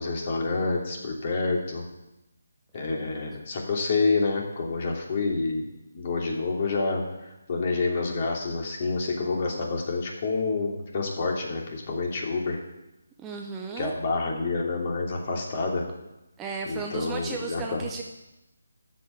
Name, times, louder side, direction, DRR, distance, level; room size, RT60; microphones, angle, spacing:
voice 1, 0.0-1.8 2.7-5.6 5.9-12.6 13.8-15.9 16.7-17.8, left 3 dB, 40° left, 0 dB, 2.9 m, -28 dB
voice 2, 13.2-13.9 16.4-18.0, right 4 dB, 10° right, 0 dB, 0.8 m, -34 dB
13.0 x 5.6 x 8.1 m, 0.94 s
figure-of-eight pair, 155°, 0 cm